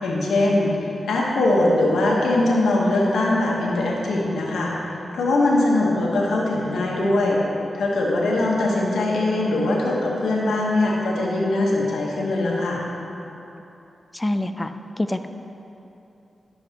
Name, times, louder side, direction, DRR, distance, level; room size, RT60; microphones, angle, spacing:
voice 1, 0.0-7.4 7.7-12.8, left 2 dB, 90° left, -3 dB, 1.2 m, -21 dB
voice 2, 14.1-14.7 15.0-15.3, left 1 dB, 20° left, 9 dB, 0.4 m, -25 dB
10.5 x 6.9 x 2.9 m, 2.9 s
cardioid pair, 50°, 0 cm